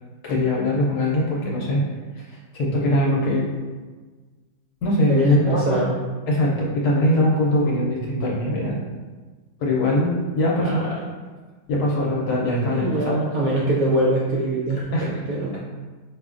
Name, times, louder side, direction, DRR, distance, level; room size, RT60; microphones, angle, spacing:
voice 1, 0.2-1.8 2.2-2.3 2.5-3.5 4.8-5.8 6.3-8.7 9.6-10.8 11.7-13.2 14.9-15.1, left 1 dB, 65° left, -4 dB, 1.1 m, -21 dB
voice 2, 5.1-6.0 10.5-10.9 12.6-15.6, right 1 dB, 70° right, -5 dB, 0.8 m, -23 dB
5.0 x 2.3 x 2.4 m, 1.4 s
omnidirectional pair, 2.0 m